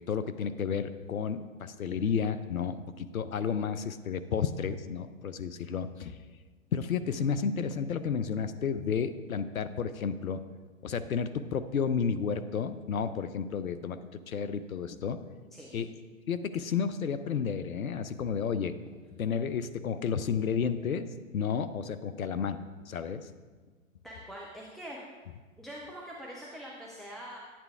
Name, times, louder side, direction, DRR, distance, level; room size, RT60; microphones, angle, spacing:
voice 1, 0.0-6.2 6.7-10.4 10.8-14.0 14.3-15.2 15.7-15.9 16.3-18.7 19.2-21.1 21.3-22.6 22.9-23.3, left 6 dB, 85° left, 12 dB, 0.7 m, -31 dB
voice 2, 15.5-15.9 24.0-25.1 25.6-27.4, equal, ahead, -4 dB, 0.4 m, -44 dB
10.5 x 8.7 x 3.5 m, 1.4 s
hypercardioid pair, 115°, 40 cm